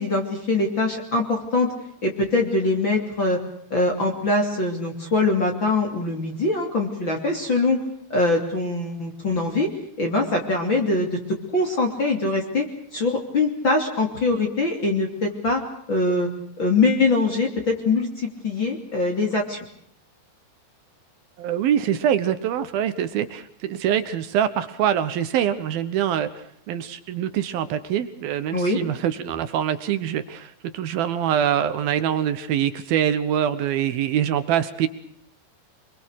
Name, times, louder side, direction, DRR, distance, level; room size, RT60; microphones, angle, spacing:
voice 1, 0.0-1.7 2.0-3.4 3.7-7.8 8.1-9.7 10.0-11.2 11.5-12.7 12.9-15.6 15.9-16.3 16.6-19.6 28.5-28.8, left 2 dB, 30° left, 2 dB, 3.1 m, -23 dB
voice 2, 21.4-34.9, right 10 dB, 65° right, 11 dB, 2.7 m, -24 dB
26.5 x 22.5 x 6.5 m, 0.69 s
omnidirectional pair, 5.1 m